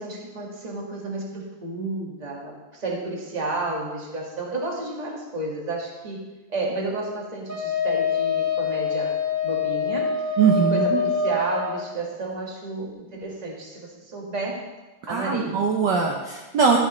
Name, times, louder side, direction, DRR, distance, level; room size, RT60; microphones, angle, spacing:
voice 1, 0.0-9.1 9.4-10.1 10.5-14.7 15.1-15.6, right 2 dB, 20° right, -2 dB, 1.5 m, -31 dB
Wind instrument woodwind instrument, 7.5-11.9, left 5 dB, 10° left, 1.1 m, -25 dB
voice 2, 10.4-11.1 15.1-16.8, right 5 dB, 65° right, 1 dB, 1.3 m, -21 dB
13.0 x 8.3 x 3.1 m, 1.2 s
omnidirectional pair, 2.4 m